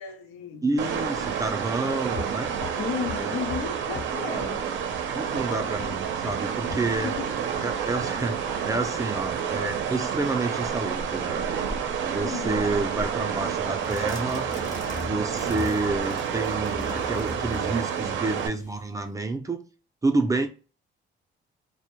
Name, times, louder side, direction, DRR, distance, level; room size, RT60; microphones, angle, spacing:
voice 1, 0.0-0.9 2.8-4.7 7.0-7.3 12.2-12.7, left 7 dB, 85° left, 0.5 m, -34 dB
voice 2, 0.6-2.5 3.2-3.4 5.1-7.1 7.6-11.5 12.0-14.5 14.9-19.6 20.0-20.5, right 3 dB, 15° right, 0.4 m, -29 dB
sound 1, 0.8-18.5, right 7 dB, 70° right, 0.5 m, -29 dB
sound 2, 2.0-16.0, left 2 dB, 60° left, 0.9 m, -43 dB
sound 3, 13.8-18.9, left 2 dB, 40° left, 0.7 m, -39 dB
2.1 x 2.1 x 2.9 m
cardioid pair, 90°, 20 cm